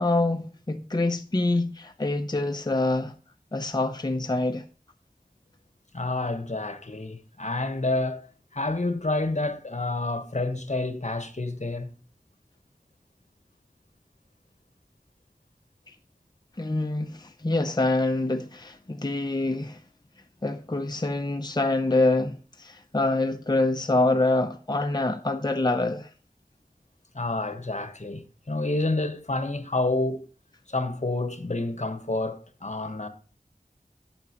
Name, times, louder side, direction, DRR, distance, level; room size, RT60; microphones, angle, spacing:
voice 1, 0.0-3.1 3.5-4.6 16.6-19.8 20.4-26.1, left 2 dB, 30° left, 0.7 m, -25 dB
voice 2, 5.9-8.3 8.5-11.9 27.1-30.3 30.7-33.1, left 2 dB, 55° left, 1.2 m, -29 dB
16.0 x 6.0 x 3.0 m
wide cardioid pair, 45°, 15 cm